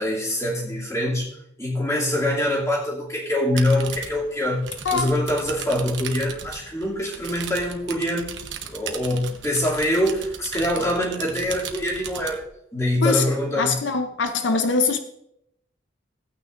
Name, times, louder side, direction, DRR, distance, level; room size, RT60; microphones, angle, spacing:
voice 1, 0.0-8.3 8.6-12.4 12.7-13.7, left 1 dB, 15° left, -5 dB, 2.6 m, -24 dB
sound 1, 3.5-12.4, right 7 dB, 75° right, 1.1 m, -37 dB
voice 2, 13.5-15.0, left 4 dB, 75° left, 7 dB, 0.7 m, -22 dB
16.5 x 9.1 x 2.6 m, 0.77 s
head